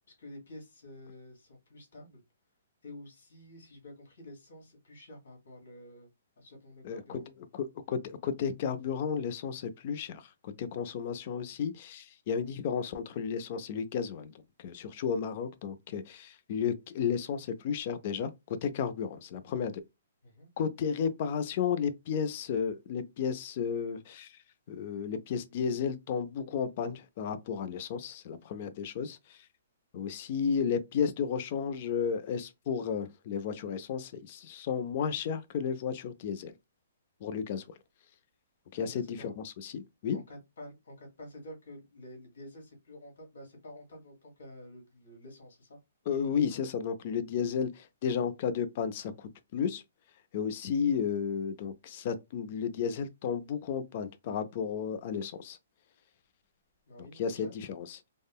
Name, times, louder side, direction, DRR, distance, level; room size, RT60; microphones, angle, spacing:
voice 1, 0.2-2.2 2.8-6.1 6.4-7.2 20.2-20.5 38.7-39.3 40.1-45.8 56.9-57.5, left 1 dB, 75° left, 1.5 m, -49 dB
voice 2, 6.8-14.3 14.6-19.8 20.6-24.4 24.7-29.5 29.9-36.5 37.2-37.7 38.7-40.2 46.1-49.8 50.3-55.6 57.2-58.0, left 7 dB, 35° left, 0.4 m, -33 dB
3.5 x 2.0 x 2.3 m
hypercardioid pair, 170°, 0 cm